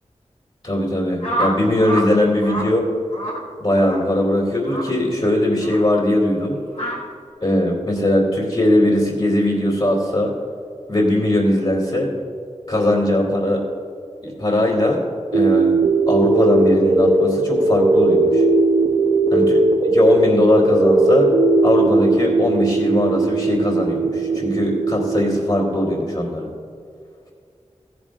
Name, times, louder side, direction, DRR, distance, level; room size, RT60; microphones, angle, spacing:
voice 1, 0.6-2.9 3.6-6.6 7.4-10.3 10.9-12.1 12.7-13.6 14.2-15.0 15.3-15.8 16.1-18.4 19.3-19.4 19.8-21.3 21.6-26.5, left 1 dB, 50° left, -4 dB, 2.6 m, -19 dB
sound 1, 1.2-2.1 2.4-2.7 3.1-3.4 3.8-4.0 4.6-4.9 5.6-5.8 6.7-7.0, right 1 dB, 90° left, 2.6 m, -26 dB
sound 2, 15.3-25.3, right 2 dB, 85° right, 1.1 m, -18 dB
15.5 x 11.0 x 2.5 m, 2.3 s
wide cardioid pair, 55°, 12 cm